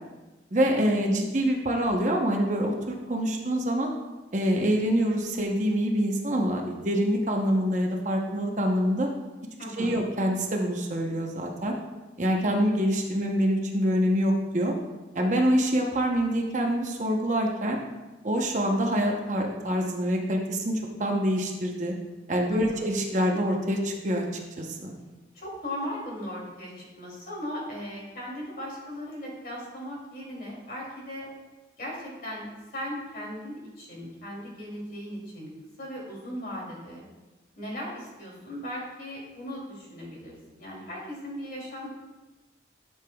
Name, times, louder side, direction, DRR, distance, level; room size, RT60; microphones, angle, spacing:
voice 1, 0.5-3.9 4.3-9.1 9.8-11.7 12.2-14.7 15.1-17.8 18.2-21.9 22.3-24.3 24.6-24.9, equal, 40° right, 1 dB, 0.9 m, -25 dB
voice 2, 9.6-10.0 22.5-22.9 25.3-31.3 31.8-35.5 35.8-37.0 37.6-41.9, equal, 50° left, -4 dB, 2.8 m, -38 dB
11.5 x 6.8 x 2.3 m, 1.2 s
head